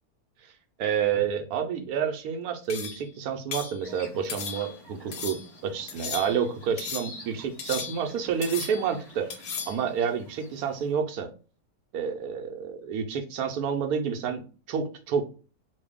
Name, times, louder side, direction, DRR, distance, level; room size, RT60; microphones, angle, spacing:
voice 1, 0.8-9.3 9.7-11.3 11.9-15.2, right 7 dB, 75° right, 5 dB, 1.0 m, -29 dB
sound 1, 2.7-3.1 3.5-3.8 4.3-4.8 5.1-5.5 5.9-6.5 6.8-7.2 7.6-8.2 8.4-8.9 9.3-9.8, left 6 dB, 70° left, 0.6 m, -36 dB
sound 2, 3.8-10.9, left 1 dB, 40° left, 1.5 m, -49 dB
3.1 x 2.2 x 3.4 m, 0.36 s
omnidirectional pair, 1.7 m